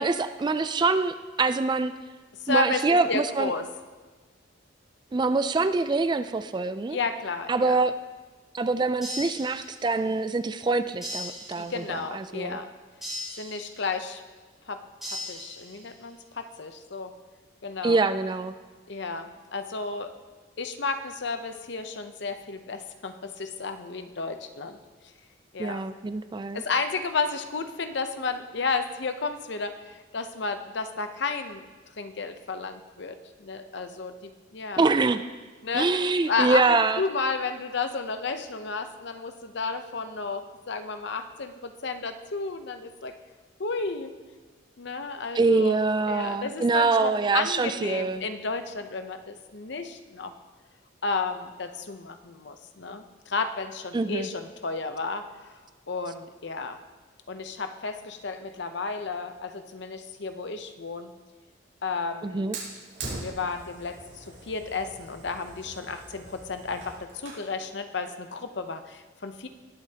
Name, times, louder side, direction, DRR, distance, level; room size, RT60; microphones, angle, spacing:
voice 1, 0.0-1.9 2.5-3.5 5.1-7.0 7.5-7.9 8.5-12.6 17.8-18.5 25.6-26.6 34.8-35.3 35.7-37.0 45.3-48.2 53.9-54.3 62.2-62.6, right 3 dB, 20° right, 11 dB, 0.3 m, -25 dB
voice 2, 2.4-3.7 6.9-7.8 11.6-12.7 13.4-14.2 14.7-17.2 17.6-18.0 18.9-20.1 20.6-24.8 25.5-25.8 26.5-31.6 32.0-34.8 35.6-35.9 36.3-43.2 43.6-44.1 44.8-45.8 46.1-50.3 51.0-55.3 55.9-56.8 57.3-61.1 61.8-62.5 63.2-69.5, left 4 dB, 60° left, 8 dB, 0.7 m, -32 dB
sound 1, 9.0-10.1 11.0-12.1 13.0-14.1 15.0-16.1, left 1 dB, ahead, 3.8 m, -39 dB
Fire, 62.5-67.5, right 3 dB, 60° right, 4.1 m, -42 dB
20.0 x 8.1 x 2.9 m, 1.3 s
head